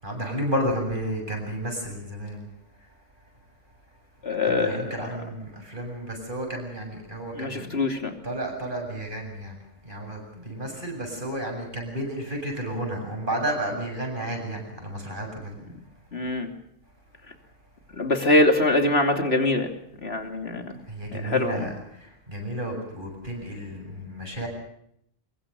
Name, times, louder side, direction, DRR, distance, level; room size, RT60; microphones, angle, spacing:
voice 1, 0.0-2.5 4.4-7.8 8.2-9.5 9.8-15.6 20.9-24.5, right 1 dB, 45° right, 2 dB, 7.9 m, -32 dB
voice 2, 4.2-4.9 7.4-8.1 16.1-16.5 18.0-19.7 20.0-20.7 21.1-21.6, left 2 dB, 60° left, 6 dB, 3.1 m, -23 dB
24.0 x 22.5 x 7.0 m, 0.71 s
omnidirectional pair, 1.2 m